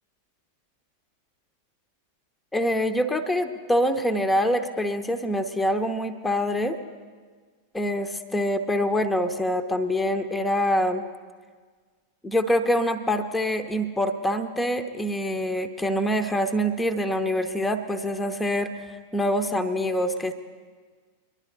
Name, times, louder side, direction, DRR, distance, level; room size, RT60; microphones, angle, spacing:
voice 1, 2.5-6.8 7.7-11.0 12.2-20.3, equal, 10° left, 8 dB, 0.8 m, -25 dB
22.5 x 11.5 x 4.0 m, 1.5 s
figure-of-eight pair, 90°, 0 cm